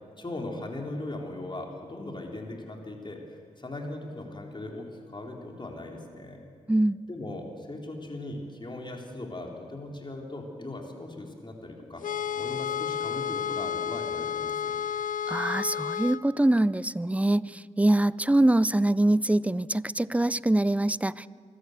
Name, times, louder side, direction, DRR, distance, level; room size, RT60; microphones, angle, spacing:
voice 1, 0.2-6.4 7.1-12.0 12.4-14.7, left 2 dB, 35° left, 1 dB, 3.8 m, -39 dB
sound 1, 12.0-16.2, left 8 dB, 75° left, 0.5 m, -31 dB
voice 2, 15.3-21.3, right 1 dB, 10° right, 20 dB, 0.5 m, -24 dB
25.0 x 13.0 x 8.1 m, 2.2 s
cardioid pair, 50°, 14 cm